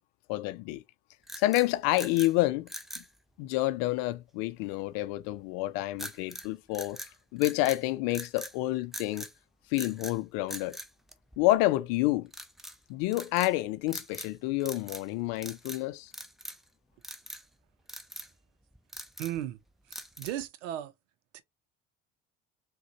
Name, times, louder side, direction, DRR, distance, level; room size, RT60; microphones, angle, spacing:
voice 1, 0.3-0.8 1.4-2.7 3.0-3.1 3.4-7.0 7.3-9.3 9.7-10.8 11.4-12.3 12.9-16.1, left 17 dB, 75° left, 0.5 m, -28 dB
sound 1, 1.2-2.3 2.7-3.1 6.0-6.5 6.7-7.8 8.1-8.6 8.9-9.3 9.7-10.2 10.5-11.7 12.3-12.8 13.1-13.5 13.9-14.3 14.6-15.1 15.4-15.8 16.1-16.7 17.0-17.4 17.9-18.3 18.7-19.4 19.9-20.5, equal, ahead, 0.6 m, -42 dB
voice 2, 19.2-19.6 19.9-20.9 21.3-21.4, right 12 dB, 90° right, 0.6 m, -36 dB
3.6 x 2.3 x 2.8 m
hypercardioid pair, 65°, 36 cm